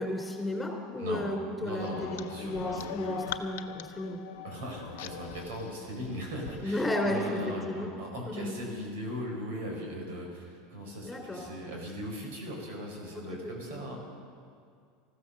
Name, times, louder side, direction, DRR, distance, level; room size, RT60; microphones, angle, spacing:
voice 1, 0.0-4.2 6.6-7.4 7.7-7.9 8.3-8.5 11.0-11.4 13.1-13.2, left 1 dB, 10° left, 1 dB, 3.5 m, -33 dB
voice 2, 1.6-2.9 4.4-14.0, equal, 80° right, 0 dB, 5.1 m, -39 dB
sound 1, 1.8-6.6, left 10 dB, 80° left, 0.8 m, -42 dB
14.5 x 14.0 x 6.7 m, 2.3 s
supercardioid pair, 110°, 0 cm